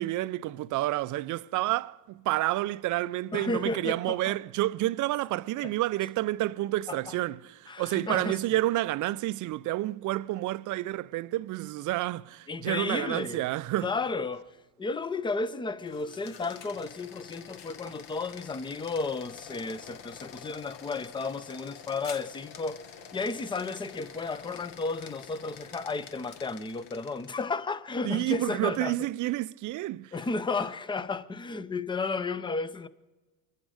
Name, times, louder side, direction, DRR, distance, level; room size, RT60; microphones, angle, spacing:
voice 1, 0.0-13.9 28.0-30.1, right 16 dB, 40° right, 0.4 m, -29 dB
voice 2, 3.3-4.3 5.6-5.7 6.9-7.1 7.7-8.4 12.5-13.4 13.8-14.4 14.8-22.8 23.1-29.0 30.1-32.9, left 3 dB, 10° left, 0.5 m, -33 dB
sound 1, 15.8-27.5, left 8 dB, 55° left, 1.3 m, -47 dB
25.0 x 10.5 x 4.9 m
supercardioid pair, 105°, 49 cm